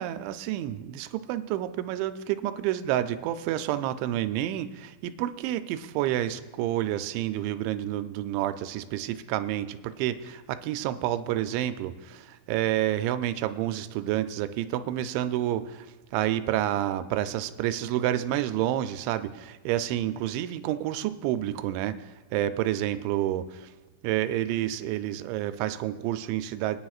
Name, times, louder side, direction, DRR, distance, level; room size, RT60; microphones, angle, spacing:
voice 1, 0.0-23.7 24.0-26.8, right 13 dB, 85° right, 10 dB, 2.9 m, -29 dB
26.0 x 9.6 x 2.4 m, 1.2 s
omnidirectional pair, 5.3 m